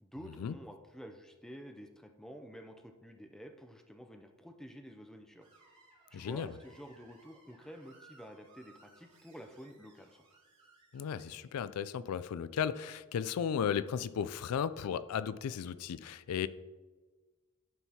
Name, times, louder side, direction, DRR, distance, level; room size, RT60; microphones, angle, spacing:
voice 1, 0.0-5.5 6.1-10.2, equal, ahead, 5 dB, 0.4 m, -50 dB
Screech, 5.4-11.5, right 3 dB, 35° right, 2.3 m, -63 dB
voice 2, 6.1-6.5 10.9-16.5, left 7 dB, 80° left, 15 dB, 0.3 m, -35 dB
11.5 x 4.6 x 2.8 m, 1.3 s
head